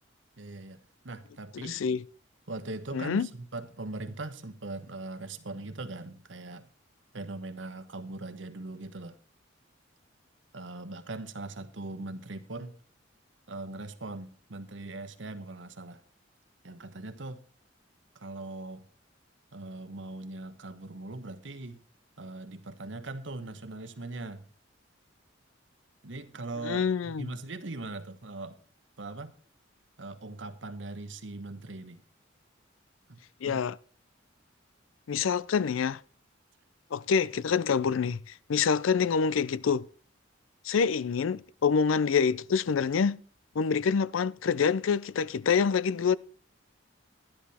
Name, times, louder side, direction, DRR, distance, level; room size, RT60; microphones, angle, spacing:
voice 1, 0.4-0.8 1.0-1.8 2.5-6.7 7.1-9.2 10.5-12.7 13.5-16.0 16.6-17.4 18.1-18.8 19.5-21.8 22.2-24.4 26.0-28.6 29.0-29.3 30.0-32.0 33.1-33.2 33.4-33.6, right 2 dB, 70° right, 1.1 m, -40 dB
voice 2, 1.6-2.0 2.9-3.3 26.6-27.3 33.4-33.8 35.1-36.0 36.9-39.9 40.6-43.2 43.6-46.2, left 6 dB, 85° left, 0.4 m, -26 dB
12.0 x 10.5 x 4.2 m
head